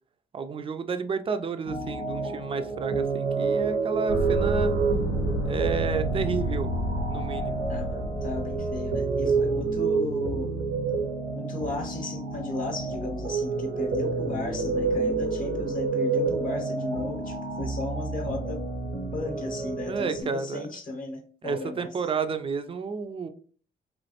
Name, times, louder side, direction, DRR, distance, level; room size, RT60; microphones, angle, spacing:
voice 1, 0.3-4.7 5.4-6.7 7.1-7.6 19.9-20.7 21.4-23.3, right 5 dB, 25° right, 9 dB, 0.4 m, -31 dB
sound 1, 1.6-20.2, right 4 dB, 90° right, 0.8 m, -29 dB
sound 2, 4.1-9.6, right 1 dB, 85° left, 0.6 m, -30 dB
voice 2, 7.7-10.6 11.3-18.6 19.1-22.1, left 2 dB, 45° left, 2 dB, 0.8 m, -35 dB
3.1 x 2.3 x 2.8 m, 0.43 s
cardioid pair, 90°, 20 cm